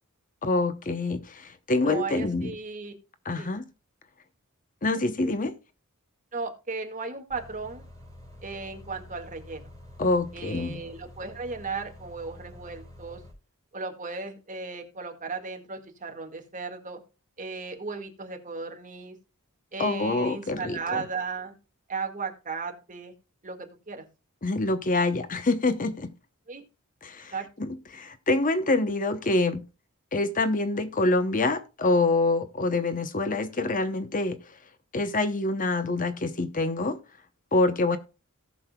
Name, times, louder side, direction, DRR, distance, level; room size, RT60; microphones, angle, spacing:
voice 1, 0.4-2.5 3.2-3.6 4.8-5.5 10.0-10.8 19.8-21.0 24.4-26.1 27.0-29.6 30.1-34.4 34.9-37.0 37.5-38.0, left 2 dB, 40° left, 11 dB, 0.8 m, -26 dB
voice 2, 1.8-2.9 3.4-3.5 6.3-7.9 8.4-9.7 10.3-13.2 13.7-17.0 17.4-19.2 19.7-21.6 21.9-23.1 23.4-24.1 26.5-26.6 27.3-27.5, right 4 dB, 35° right, 3 dB, 1.9 m, -36 dB
sound 1, 7.3-13.3, left 1 dB, 15° left, 4.6 m, -48 dB
18.0 x 6.3 x 2.3 m, 0.31 s
head